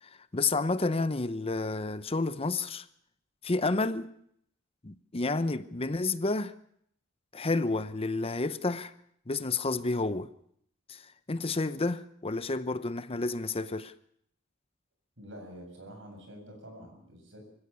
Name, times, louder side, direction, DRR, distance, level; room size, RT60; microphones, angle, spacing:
voice 1, 0.0-2.9 3.4-4.1 4.8-6.5 7.3-8.9 9.3-10.3 10.9-11.0 11.3-13.9, left 3 dB, 30° left, 0.8 m, -30 dB
voice 2, 15.2-17.4, equal, 65° right, 7.6 m, -47 dB
24.0 x 16.0 x 7.0 m
head